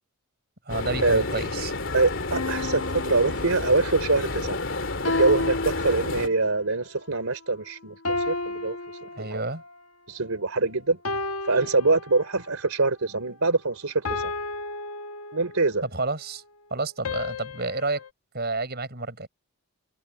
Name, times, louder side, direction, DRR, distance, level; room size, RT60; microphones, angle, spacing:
sound 1, 0.7-6.3, left 2 dB, 60° left, 2.9 m, -30 dB
voice 1, 0.7-1.7 9.2-9.6 15.8-16.4 16.7-18.0 18.3-19.3, right 3 dB, 45° right, 6.8 m, -30 dB
voice 2, 1.9-4.6 5.1-8.8 9.2-9.4 10.1-11.0 11.4-14.3 15.3-15.8, right 3 dB, 80° right, 3.2 m, -24 dB
sound 2, 2.3-4.0 5.0-6.6 8.0-9.7 11.0-12.6 14.0-15.8 17.0-18.1, left 3 dB, 85° left, 1.4 m, -32 dB
head